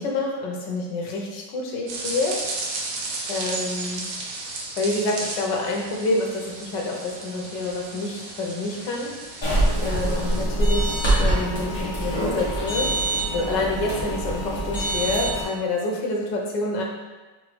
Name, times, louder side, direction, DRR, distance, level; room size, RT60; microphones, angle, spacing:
voice 1, 0.0-2.4 3.3-4.0 4.8-9.1 9.8-12.9 13.3-16.8, left 2 dB, 85° left, 0 dB, 1.4 m, -27 dB
sound 1, 1.9-10.4, right 3 dB, 80° right, 1.3 m, -34 dB
sound 2, 9.4-15.4, right 1 dB, 15° left, 1.2 m, -24 dB
4.0 x 3.5 x 3.1 m, 1.2 s
omnidirectional pair, 1.9 m